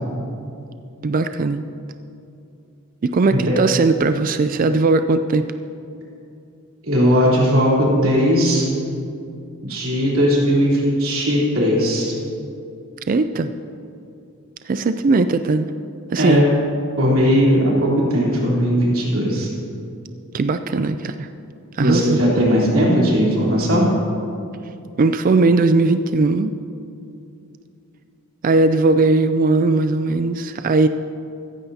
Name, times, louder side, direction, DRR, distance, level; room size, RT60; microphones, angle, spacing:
voice 1, 1.0-1.6 3.0-5.5 13.1-13.5 14.7-15.7 16.1-16.5 20.3-21.3 21.8-22.2 25.0-26.5 28.4-30.9, right 3 dB, 40° right, 9 dB, 0.4 m, -18 dB
voice 2, 6.8-8.7 9.6-12.1 16.2-16.5 17.0-19.5 21.8-23.9, equal, 70° right, -5 dB, 3.5 m, -18 dB
15.5 x 14.5 x 2.8 m, 2.6 s
head